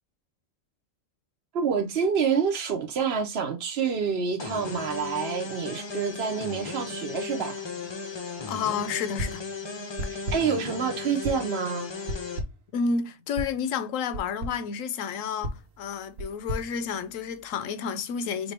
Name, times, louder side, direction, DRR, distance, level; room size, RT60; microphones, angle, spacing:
voice 1, 1.5-7.6 10.1-11.9, right 6 dB, 55° right, 0.9 m, -27 dB
sound 1, 4.4-12.4, left 4 dB, 35° left, 0.4 m, -36 dB
voice 2, 8.5-9.4 10.0-10.1 12.7-18.5, left 6 dB, 85° left, 1.0 m, -30 dB
sound 2, 9.2-9.5 10.0-10.6 11.2-11.6 12.1-12.7 13.4-13.6 14.1-14.7 15.4-17.5, equal, 80° right, 1.1 m, -35 dB
4.3 x 2.6 x 3.3 m
omnidirectional pair, 1.3 m